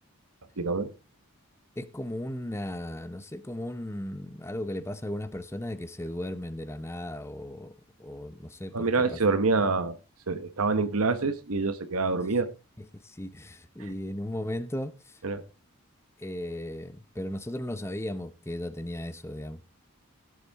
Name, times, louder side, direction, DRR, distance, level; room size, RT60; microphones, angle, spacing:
voice 1, 0.6-0.9 8.7-10.0 10.3-12.5 13.8-13.9 15.2-15.4, right 3 dB, 85° right, 1.1 m, -26 dB
voice 2, 1.8-7.7 8.0-9.2 13.0-15.2 16.2-19.6, left 1 dB, 10° left, 0.8 m, -36 dB
16.0 x 8.4 x 3.5 m
head